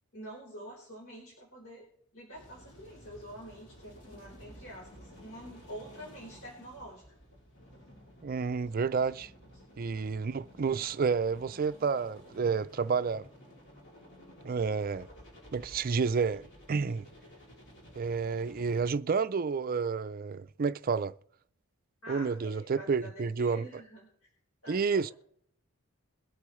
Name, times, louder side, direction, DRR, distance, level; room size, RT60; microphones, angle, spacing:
voice 1, 0.1-1.9 2.1-7.0 9.5-9.6 22.0-24.3 24.6-25.1, equal, 70° left, 4.4 m, -47 dB
sound 1, 2.3-18.9, equal, 55° left, 3.0 m, -53 dB
voice 2, 8.2-9.3 9.8-13.3 14.4-15.1 15.5-17.1 18.0-21.1 22.1-23.7 24.7-25.1, right 5 dB, 40° right, 0.4 m, -30 dB
22.5 x 8.4 x 3.1 m
head